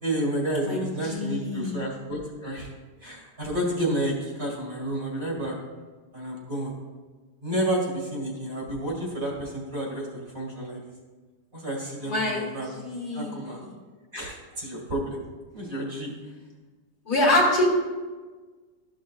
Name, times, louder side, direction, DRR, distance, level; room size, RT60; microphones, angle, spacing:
voice 1, 0.0-2.7 3.0-5.5 6.1-6.7 7.4-10.9 11.5-12.7 13.1-13.6 14.1-15.2 15.5-16.1, right 1 dB, 35° right, -4 dB, 2.2 m, -30 dB
voice 2, 0.6-1.8 12.0-13.6 17.1-17.7, left 1 dB, 55° left, -3 dB, 2.0 m, -26 dB
13.0 x 6.4 x 2.4 m, 1.4 s
omnidirectional pair, 1.9 m